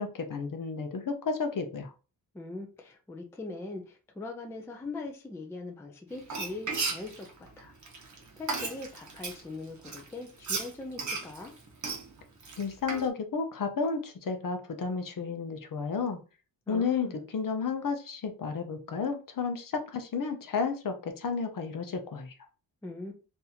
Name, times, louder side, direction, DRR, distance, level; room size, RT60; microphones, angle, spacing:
voice 1, 0.0-1.9 12.6-16.2 16.7-22.3, left 5 dB, 50° left, 0.6 m, -32 dB
voice 2, 2.3-7.7 8.4-11.5 16.7-17.2 22.8-23.1, left 2 dB, 5° left, 0.4 m, -41 dB
Frying (food), 6.2-9.4 9.8-13.1, right 4 dB, 40° right, 0.9 m, -35 dB
3.9 x 2.6 x 2.8 m
wide cardioid pair, 165°, 44 cm